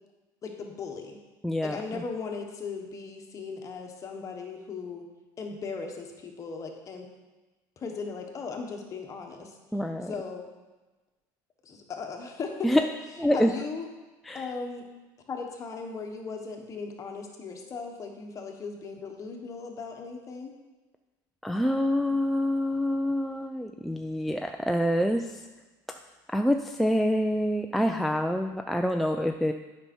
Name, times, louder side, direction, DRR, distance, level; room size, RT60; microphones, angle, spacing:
voice 1, 0.4-1.2 1.6-5.0 5.4-7.1 7.8-9.5 10.1-10.5 11.6-12.9 13.3-13.9 14.3-14.9 15.3-20.5 22.1-22.2, left 4 dB, 35° left, 2 dB, 1.4 m, -37 dB
voice 2, 1.4-2.0 9.7-10.1 12.6-12.8 13.2-13.5 14.3-14.5 21.4-25.4 26.3-29.5, equal, ahead, 4 dB, 0.4 m, -26 dB
8.7 x 5.6 x 4.5 m, 1.2 s
supercardioid pair, 110°, 10 cm